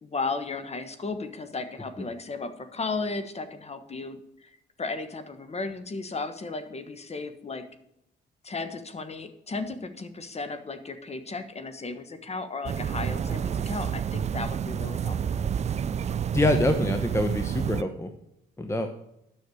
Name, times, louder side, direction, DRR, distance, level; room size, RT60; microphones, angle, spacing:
voice 1, 0.0-4.5 4.8-7.6 8.4-15.5, left 3 dB, 30° left, 9 dB, 1.3 m, -35 dB
sound 1, 12.7-17.8, right 8 dB, 35° right, 0.4 m, -29 dB
voice 2, 16.3-18.1 18.6-18.9, left 1 dB, 15° left, 7 dB, 1.0 m, -25 dB
9.9 x 6.3 x 6.4 m, 0.79 s
cardioid pair, 90°, 20 cm